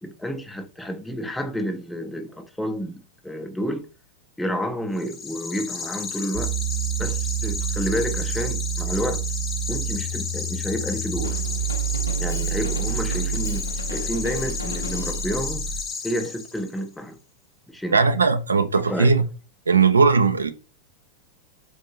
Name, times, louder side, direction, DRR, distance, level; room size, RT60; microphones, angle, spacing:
voice 1, 0.0-3.9 4.4-6.5 7.0-9.2 9.7-11.4 12.2-15.7 16.0-17.2 17.7-18.0 18.9-19.1, equal, 5° left, 0.5 m, -30 dB
sound 1, 4.9-16.8, left 5 dB, 25° left, 0.9 m, -33 dB
sound 2, 6.3-15.9, right 8 dB, 55° right, 0.9 m, -28 dB
Drum kit, 11.2-15.4, left 3 dB, 75° left, 0.4 m, -38 dB
voice 2, 17.9-19.2 19.7-20.5, right 4 dB, 75° right, 0.4 m, -18 dB
3.8 x 2.6 x 2.9 m
figure-of-eight pair, 90°, 0 cm